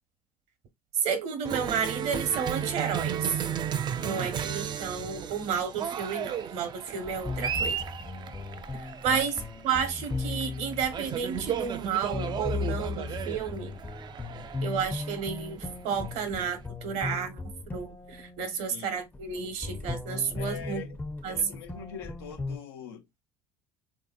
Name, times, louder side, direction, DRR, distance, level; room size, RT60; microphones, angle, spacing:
voice 1, 1.0-3.4 4.0-7.8 8.7-9.3 9.6-13.8 14.6-20.8 21.2-21.4, right 7 dB, 65° right, 1.0 m, -31 dB
Cheering, 1.4-16.6, right 8 dB, 35° right, 0.4 m, -35 dB
voice 2, 4.0-4.7 9.1-9.2 18.7-19.0 20.4-21.0 21.2-23.2, left 8 dB, 90° left, 0.8 m, -43 dB
sound 1, 7.0-22.6, left 4 dB, 15° left, 0.6 m, -37 dB
3.2 x 2.7 x 2.4 m
supercardioid pair, 85°, 13 cm